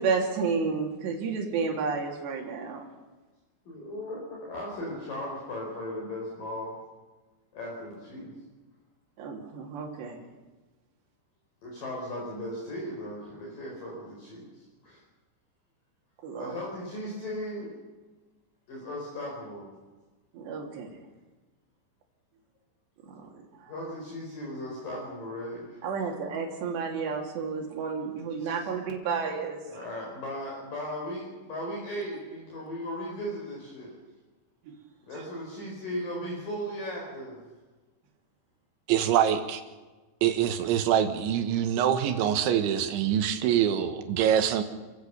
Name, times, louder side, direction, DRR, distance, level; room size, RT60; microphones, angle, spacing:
voice 1, 0.0-2.9 9.2-10.2 16.2-16.5 20.3-20.9 23.1-23.2 25.8-29.6 34.7-34.8 35.2-35.3, right 5 dB, 70° right, 1 dB, 4.9 m, -31 dB
voice 2, 3.7-6.8 7.5-8.3 11.6-15.0 16.3-17.7 18.7-19.7 23.7-26.1 28.4-28.7 29.7-34.0 35.1-37.4, equal, 50° left, -3 dB, 5.9 m, -37 dB
voice 3, 38.9-39.6 40.2-44.6, right 9 dB, 85° right, 8 dB, 3.8 m, -24 dB
28.5 x 15.0 x 7.0 m, 1.2 s
omnidirectional pair, 5.3 m